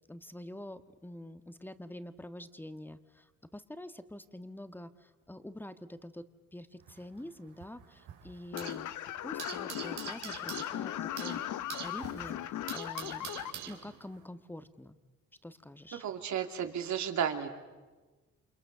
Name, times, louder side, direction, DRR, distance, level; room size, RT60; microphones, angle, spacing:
voice 1, 0.1-6.2 6.5-8.9 9.2-13.3 13.6-15.0 15.4-16.0, left 1 dB, 5° left, 10 dB, 1.5 m, -46 dB
sound 1, 6.8-8.9 9.2-14.2, right 9 dB, 85° right, 3.9 m, -45 dB
sound 2, 8.5-13.5, left 12 dB, 80° left, 1.0 m, -38 dB
voice 2, 15.9-17.5, right 8 dB, 70° right, 5 dB, 2.8 m, -33 dB
29.0 x 28.0 x 6.8 m, 1.3 s
cardioid pair, 90°, 30 cm